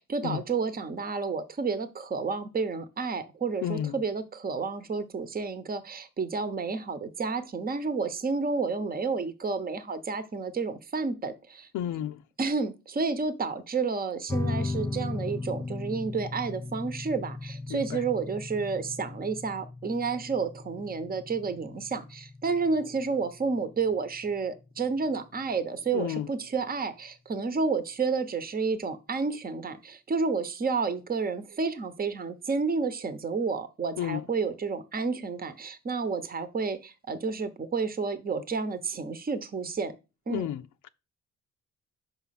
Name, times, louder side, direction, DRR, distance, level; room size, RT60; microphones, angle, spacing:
voice 1, 0.0-11.7 12.4-40.0 40.3-40.5, right 4 dB, 30° right, 0.9 m, -30 dB
voice 2, 3.6-4.0 11.7-12.2 17.7-18.0 25.9-26.3 34.0-34.3 40.3-40.9, left 11 dB, 80° left, 0.6 m, -32 dB
sound 1, 14.3-25.3, left 3 dB, 10° left, 0.3 m, -37 dB
5.6 x 5.3 x 5.8 m
cardioid pair, 90°, 30 cm